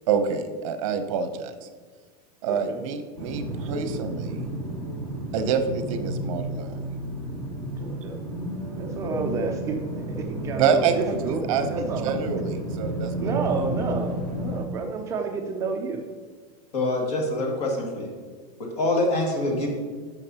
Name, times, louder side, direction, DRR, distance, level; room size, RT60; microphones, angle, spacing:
voice 1, 0.1-1.6 2.4-4.5 5.3-6.8 10.6-13.5, right 6 dB, 55° right, 8 dB, 0.7 m, -27 dB
voice 2, 2.5-2.8 7.8-8.2 8.8-12.1 13.2-16.0, right 4 dB, 15° right, 3 dB, 0.3 m, -30 dB
sound 1, 3.2-14.6, right 1 dB, 15° left, 1.3 m, -32 dB
voice 3, 16.7-18.1 18.6-19.7, left 2 dB, 80° left, -1 dB, 2.2 m, -25 dB
12.5 x 5.9 x 2.8 m, 1.5 s
supercardioid pair, 170°, 20 cm